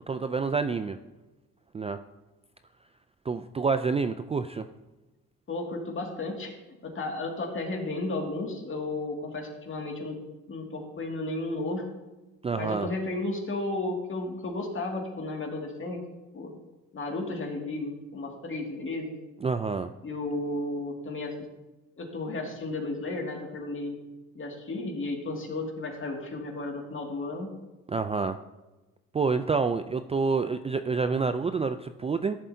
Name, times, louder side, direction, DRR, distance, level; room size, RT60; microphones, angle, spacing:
voice 1, 0.1-1.0 1.7-2.0 3.3-4.7 12.4-12.9 19.4-19.9 27.9-28.4 29.1-32.4, right 4 dB, 20° right, 9 dB, 0.3 m, -28 dB
voice 2, 5.5-6.5 6.8-10.2 10.5-11.9 12.5-16.0 16.3-16.5 16.9-19.2 20.0-21.3 22.0-24.0 24.3-27.5, left 2 dB, 40° left, 1 dB, 2.2 m, -33 dB
13.5 x 7.3 x 2.7 m, 1.1 s
cardioid pair, 90°, 30 cm